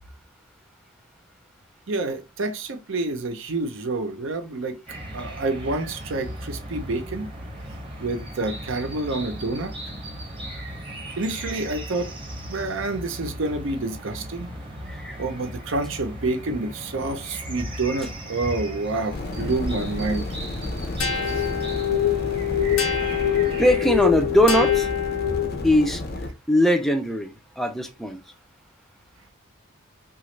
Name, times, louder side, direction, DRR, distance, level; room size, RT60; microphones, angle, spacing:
voice 1, 1.9-4.8 5.1-7.3 8.0-9.7 11.2-12.1 12.5-14.5 15.2-20.3 21.3-21.4, right 2 dB, 70° right, 0.6 m, -28 dB
sound 1, 4.9-24.1, equal, 25° right, 0.9 m, -37 dB
sound 2, 19.1-26.3, left 2 dB, 50° left, 0.6 m, -32 dB
sound 3, 21.0-25.8, left 10 dB, 90° left, 0.9 m, -24 dB
voice 2, 22.8-24.9 25.3-25.4 25.6-26.0 26.5-28.2, left 1 dB, ahead, 0.4 m, -21 dB
2.9 x 2.4 x 3.1 m
head